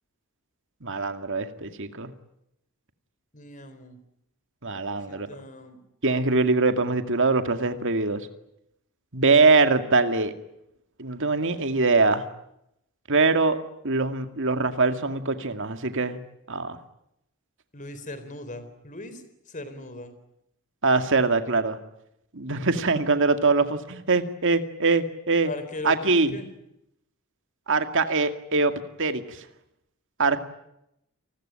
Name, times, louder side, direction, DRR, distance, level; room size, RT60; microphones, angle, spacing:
voice 1, 0.8-2.1 4.6-5.3 6.0-8.3 9.1-10.3 11.0-12.2 13.1-13.6 13.8-16.2 16.5-16.8 20.8-21.8 22.3-25.5 25.8-26.3 27.7-28.7 29.0-29.2 30.2-30.4, right 3 dB, 60° right, 8 dB, 2.2 m, -23 dB
voice 2, 3.3-4.0 5.1-5.8 17.7-20.1 25.4-26.5, left 2 dB, 35° left, 11 dB, 4.1 m, -39 dB
29.5 x 20.5 x 9.0 m, 0.80 s
head